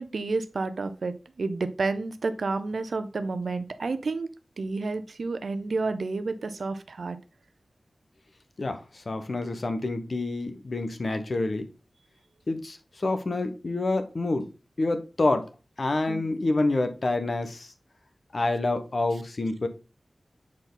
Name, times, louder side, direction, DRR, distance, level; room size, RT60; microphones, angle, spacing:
voice 1, 0.0-7.2 16.1-16.2, right 3 dB, 80° right, 0.6 m, -30 dB
voice 2, 8.6-11.7 12.5-14.5 14.8-15.5 15.8-17.7 18.3-19.7, left 2 dB, 55° left, 1.0 m, -27 dB
7.4 x 4.5 x 3.9 m
wide cardioid pair, 70°, 0 cm